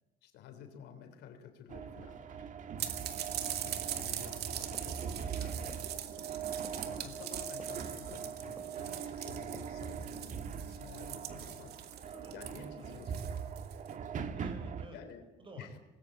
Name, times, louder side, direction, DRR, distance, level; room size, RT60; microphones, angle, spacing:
voice 1, 0.2-2.5 3.5-6.4 6.8-11.8 12.3-13.3 14.9-15.2 15.5-15.8, left 7 dB, 80° left, 7 dB, 3.4 m, -52 dB
sound 1, 1.7-14.9, right 7 dB, 50° right, 1.9 m, -41 dB
sound 2, 2.8-13.9, right 11 dB, 70° right, 2.4 m, -42 dB
voice 2, 2.9-3.3 3.6-4.2 12.1-13.0 14.1-15.0 15.4-15.7, right 2 dB, 30° right, 6 dB, 6.3 m, -54 dB
sound 3, 4.7-5.4 5.7-5.9 6.2-6.4 6.6-7.3 7.6-7.8 8.1-8.3 8.6-8.8 9.1-9.2 9.5-9.7, equal, 10° right, 3.9 m, -54 dB
26.0 x 20.5 x 8.4 m, 1.0 s
cardioid pair, 110°, 17 cm